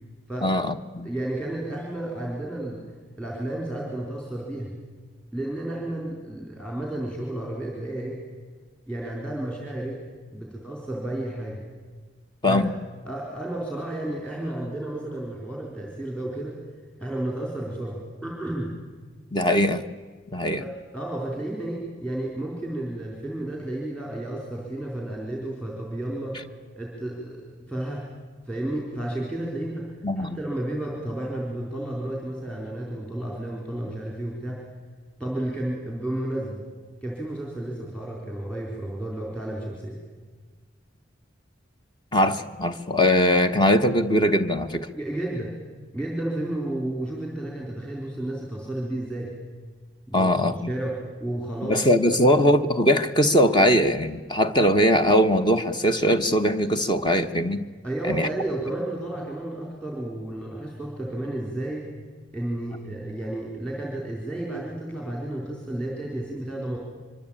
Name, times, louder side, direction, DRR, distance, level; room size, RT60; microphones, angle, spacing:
voice 1, 0.4-1.1 12.4-12.7 19.3-19.8 20.3-20.6 30.0-30.4 42.1-44.9 50.1-50.7 51.6-57.6 58.1-58.3, equal, 25° left, 8 dB, 1.1 m, -21 dB
voice 2, 1.0-2.8 3.2-4.7 5.3-8.2 8.9-10.0 10.3-11.6 12.4-12.7 13.1-16.6 17.0-18.7 20.6-26.4 26.8-28.0 28.5-34.6 35.2-36.6 37.0-40.0 44.9-45.5 45.9-49.3 50.1-52.5 57.8-61.9 62.3-66.8, right 1 dB, 5° left, -1 dB, 4.0 m, -32 dB
24.5 x 24.0 x 8.8 m, 1.5 s
head